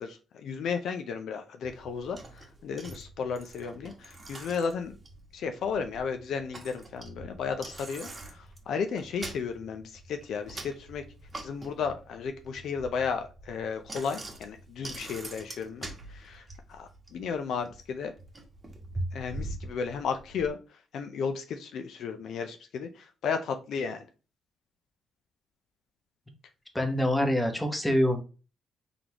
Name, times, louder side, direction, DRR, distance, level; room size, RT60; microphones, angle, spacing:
voice 1, 0.0-5.0 5.3-11.0 11.4-16.4 16.7-18.1 19.1-20.6 20.9-24.1, left 6 dB, 70° left, 7 dB, 0.5 m, -34 dB
Bicycle, 1.6-20.5, right 2 dB, 25° right, 1.1 m, -44 dB
voice 2, 26.7-28.2, left 1 dB, 10° left, 4 dB, 1.0 m, -25 dB
3.9 x 3.4 x 2.9 m, 0.33 s
cardioid pair, 90°, 0 cm